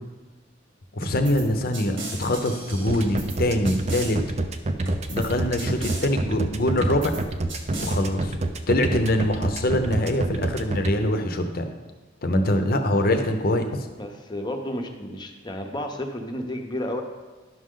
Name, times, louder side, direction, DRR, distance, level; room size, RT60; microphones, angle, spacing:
voice 1, 0.9-4.2 5.1-7.1 7.8-8.4 8.7-11.6 12.2-13.9, left 1 dB, 50° left, 6 dB, 0.8 m, -24 dB
sound 1, 1.0-1.4 1.7-3.4 3.7-4.1 4.9-5.3 5.6-6.1 6.8-7.2 7.5-8.0, right 1 dB, 85° right, 1.8 m, -35 dB
sound 2, 2.9-10.9, right 2 dB, 35° right, 0.5 m, -27 dB
voice 2, 14.0-17.0, left 1 dB, 25° left, 4 dB, 0.8 m, -32 dB
10.5 x 6.4 x 3.8 m, 1.3 s
head